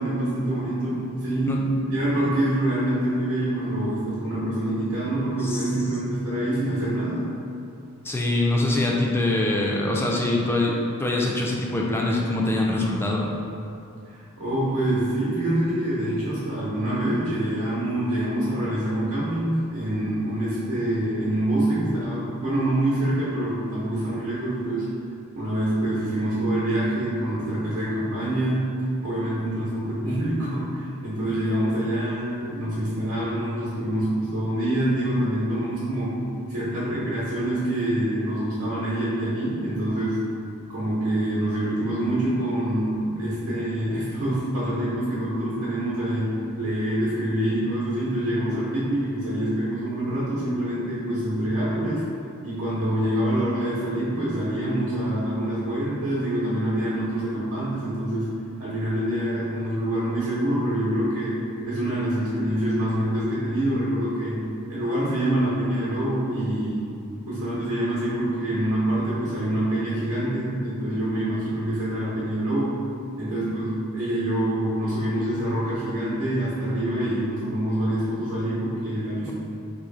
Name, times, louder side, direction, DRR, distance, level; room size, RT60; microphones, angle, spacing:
voice 1, 0.0-7.4 14.1-24.9 25.3-28.7 29.0-40.3 40.7-52.0 52.4-66.9 67.3-72.8 73.2-79.3, right 1 dB, 70° right, -9 dB, 0.9 m, -26 dB
voice 2, 8.0-13.3 79.3-79.4, left 2 dB, 10° left, -2 dB, 0.3 m, -24 dB
3.0 x 2.6 x 3.9 m, 2.6 s
head